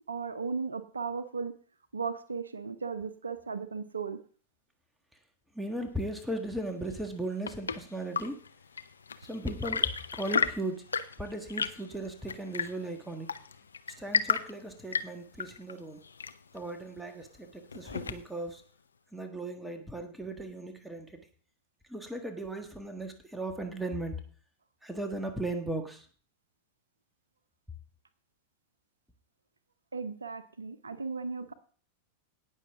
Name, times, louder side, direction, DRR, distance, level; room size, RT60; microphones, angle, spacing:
voice 1, 0.1-1.5 1.9-4.2 29.9-31.5, right 5 dB, 75° right, 12 dB, 0.8 m, -36 dB
voice 2, 5.5-8.4 9.2-10.8 11.2-13.3 14.0-16.0 16.5-18.6 19.1-21.2 21.9-24.2 24.8-26.1, right 1 dB, 5° right, 5 dB, 1.5 m, -37 dB
Chirp tweet / Engine / Tap, 7.0-18.5, left 5 dB, 75° left, 0.6 m, -35 dB
18.0 x 6.4 x 3.6 m, 0.42 s
figure-of-eight pair, 90°, 0 cm